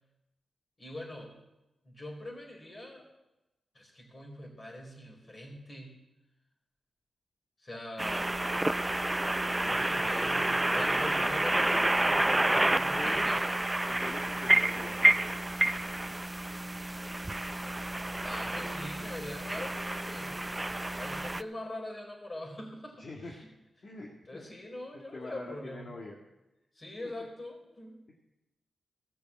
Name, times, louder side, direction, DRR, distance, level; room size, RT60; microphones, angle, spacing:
voice 1, 0.8-1.3 1.8-3.1 3.7-5.9 7.6-8.3 9.6-13.4 18.2-20.4 21.0-23.5 24.3-25.9 26.7-28.0, left 1 dB, 40° left, 0 dB, 4.4 m, -43 dB
sound 1, 8.0-21.4, right 1 dB, 15° right, 0.4 m, -29 dB
voice 2, 11.1-11.6 12.6-13.3 13.9-15.3 23.0-23.5 23.8-24.5 25.1-26.2 27.0-27.1, left 2 dB, 55° left, -2 dB, 1.9 m, -44 dB
16.5 x 6.7 x 7.3 m, 0.99 s
cardioid pair, 60°, 0 cm